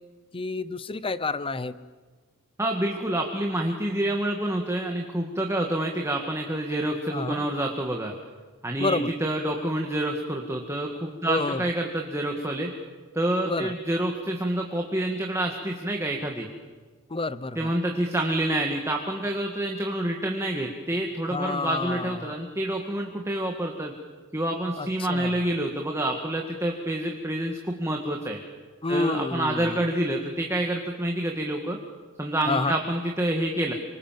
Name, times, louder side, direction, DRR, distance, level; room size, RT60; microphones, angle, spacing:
voice 1, 0.3-1.7 7.1-7.4 8.8-9.1 11.3-11.6 13.5-13.7 17.1-17.7 21.3-22.4 24.8-25.4 28.8-29.8 32.5-32.8, left 3 dB, 25° left, 15 dB, 0.8 m, -29 dB
voice 2, 2.6-8.1 8.6-12.7 13.1-16.5 17.6-23.9 24.3-28.4 28.9-31.8 32.2-33.7, right 1 dB, 10° right, 1 dB, 1.9 m, -28 dB
27.5 x 25.0 x 7.6 m, 1.4 s
head